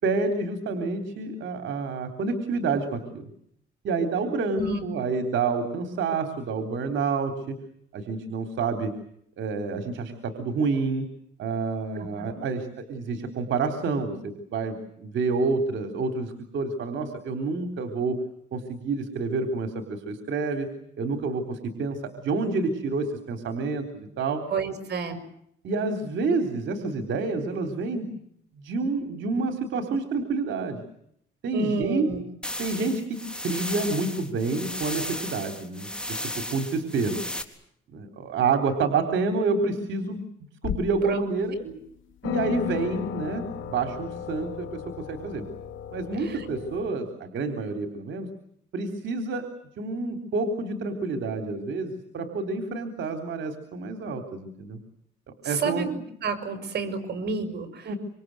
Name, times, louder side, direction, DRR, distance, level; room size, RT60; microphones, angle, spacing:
voice 1, 0.0-3.3 3.8-7.5 7.9-8.9 9.4-11.1 11.4-18.2 18.5-20.7 21.0-22.0 22.2-24.4 25.6-28.1 28.6-30.8 31.4-32.1 32.6-37.2 37.9-40.2 40.6-41.5 42.2-45.4 45.9-48.3 48.7-49.4 49.8-54.8 55.5-55.9 57.9-58.0, right 4 dB, 75° right, 6 dB, 3.7 m, -28 dB
voice 2, 4.5-4.9 11.9-12.4 24.5-25.2 31.5-32.2 41.0-41.2 41.6-41.7 46.1-46.5 55.4-55.9 56.2-58.0, right 4 dB, 60° right, 9 dB, 6.3 m, -30 dB
sound 1, 32.4-37.4, left 1 dB, 5° left, 3.8 m, -35 dB
sound 2, 40.6-41.1 41.7-41.8 42.2-46.9, left 10 dB, 80° left, 2.4 m, -34 dB
27.0 x 26.0 x 7.9 m, 0.72 s
cardioid pair, 90°, 20 cm